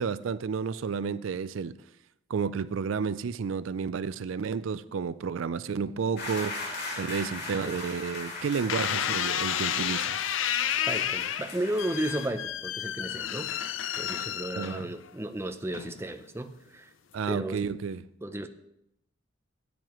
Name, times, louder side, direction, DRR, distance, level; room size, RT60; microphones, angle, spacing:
voice 1, 0.0-1.8 2.3-6.6 7.0-10.2 14.5-14.9 17.1-18.0, right 6 dB, 85° right, 16 dB, 0.4 m, -31 dB
sound 1, 6.2-12.3, left 2 dB, 60° left, 3.0 m, -39 dB
sound 2, 8.7-15.1 15.7-16.2, left 10 dB, 75° left, 0.5 m, -31 dB
voice 2, 10.9-13.5 14.0-16.9 17.3-17.6 18.2-18.5, right 1 dB, 15° right, 8 dB, 0.5 m, -34 dB
14.5 x 9.1 x 3.1 m, 0.81 s
head